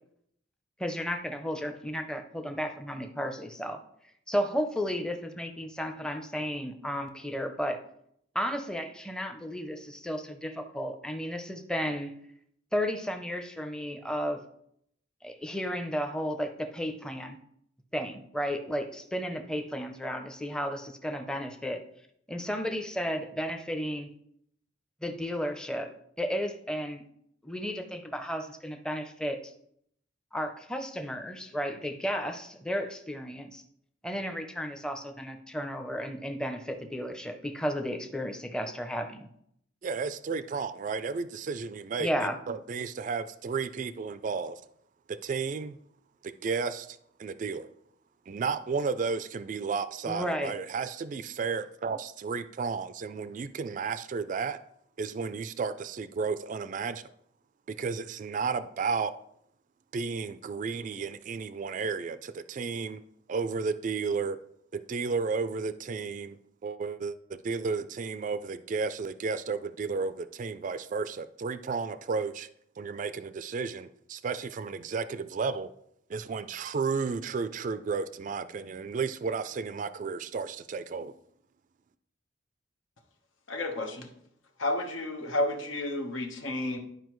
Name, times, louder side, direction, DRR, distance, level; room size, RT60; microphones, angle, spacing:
voice 1, 0.8-3.8 4.3-7.8 8.3-12.1 12.7-14.4 15.2-17.4 17.9-21.8 22.3-24.1 25.0-25.9 26.2-27.0 27.4-29.5 30.3-33.6 34.0-39.3 42.0-42.4 50.1-50.5, equal, 5° left, 6 dB, 0.6 m, -33 dB
voice 2, 39.8-44.6 45.1-45.8 46.2-47.7 48.3-54.6 55.0-57.0 57.8-59.1 59.9-63.0 63.3-64.4 64.7-66.4 66.6-72.5 72.8-75.7 76.1-81.1, right 5 dB, 40° right, 12 dB, 0.3 m, -33 dB
voice 3, 83.5-84.1 84.6-86.8, left 1 dB, 85° left, 4 dB, 1.1 m, -31 dB
11.5 x 4.8 x 3.1 m, 0.71 s
head